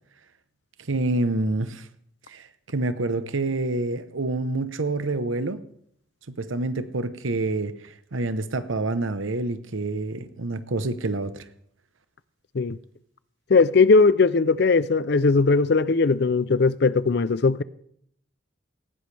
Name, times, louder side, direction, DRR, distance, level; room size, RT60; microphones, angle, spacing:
voice 1, 0.9-1.9 2.3-5.6 6.3-7.7 8.1-11.4, right 2 dB, 80° right, 1.0 m, -27 dB
voice 2, 13.5-17.6, left 4 dB, 55° left, 0.5 m, -19 dB
18.5 x 16.0 x 3.4 m
head